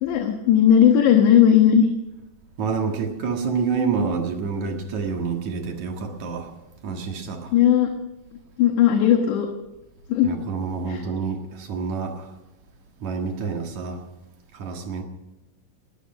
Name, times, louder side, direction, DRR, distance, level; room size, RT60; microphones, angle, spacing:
voice 1, 0.0-1.9 7.5-7.9 8.6-9.5 10.1-10.3 10.9-11.0, left 9 dB, 75° left, 4 dB, 3.4 m, -17 dB
voice 2, 2.6-6.5 6.8-7.5 10.2-12.3 13.0-14.0 14.5-15.0, right 5 dB, 55° right, 3 dB, 2.3 m, -28 dB
20.0 x 13.0 x 5.4 m, 1.0 s
omnidirectional pair, 5.2 m